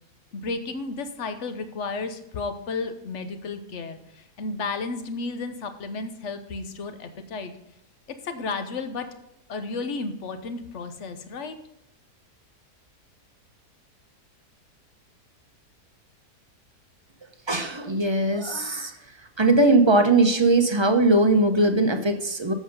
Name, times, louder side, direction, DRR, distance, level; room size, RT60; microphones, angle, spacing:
voice 1, 0.3-7.5 8.2-9.1 9.5-11.5, left 3 dB, 55° left, 8 dB, 1.2 m, -33 dB
voice 2, 17.5-18.9 19.4-22.5, right 2 dB, 25° right, 6 dB, 0.7 m, -20 dB
7.9 x 7.4 x 5.3 m, 0.84 s
omnidirectional pair, 1.7 m